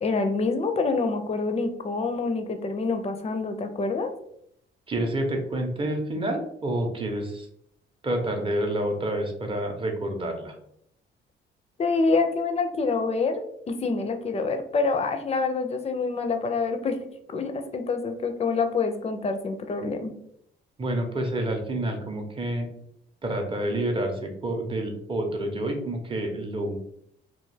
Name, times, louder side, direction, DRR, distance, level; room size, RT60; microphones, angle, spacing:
voice 1, 0.0-4.1 11.8-17.0 17.3-20.1, left 4 dB, 30° left, 6 dB, 0.4 m, -26 dB
voice 2, 4.9-7.5 8.0-10.5 20.8-22.7 23.2-26.8, right 1 dB, 25° right, 3 dB, 0.6 m, -28 dB
2.3 x 2.2 x 3.2 m, 0.72 s
cardioid pair, 90°, 20 cm